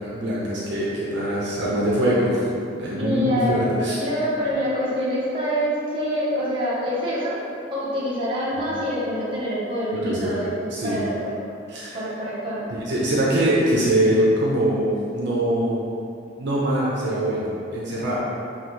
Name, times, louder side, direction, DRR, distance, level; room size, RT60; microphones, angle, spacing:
voice 1, 0.0-2.4 2.7-4.0 8.6-8.7 9.9-10.4 10.7-11.0 11.7-12.0 12.7-15.8 16.4-18.2, right 1 dB, 65° right, -6 dB, 0.7 m, -23 dB
voice 2, 3.0-7.4 7.7-10.5 10.8-11.6 11.9-12.7, equal, 25° right, -9 dB, 1.0 m, -26 dB
5.6 x 2.4 x 3.1 m, 2.6 s
head